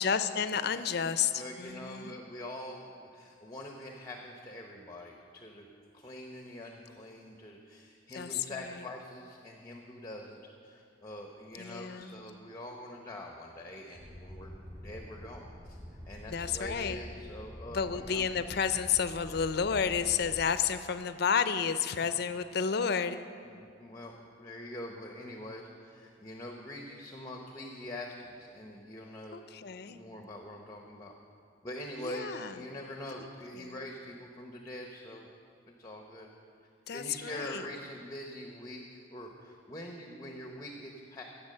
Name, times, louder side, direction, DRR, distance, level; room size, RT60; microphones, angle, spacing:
voice 1, 0.0-2.2 8.1-8.7 11.6-12.1 16.3-17.0 17.7-23.2 29.3-30.0 32.0-32.6 33.2-33.3 33.5-33.8 36.9-37.6, left 7 dB, 55° left, 11 dB, 0.5 m, -31 dB
voice 2, 1.3-5.7 5.9-15.8 16.1-18.3 23.4-29.4 29.9-31.1 31.6-35.3 35.7-36.3 36.9-41.2, left 1 dB, 20° left, 2 dB, 0.8 m, -44 dB
sound 1, 13.9-20.4, equal, 20° right, 1.9 m, -47 dB
16.0 x 7.0 x 6.6 m, 2.4 s
head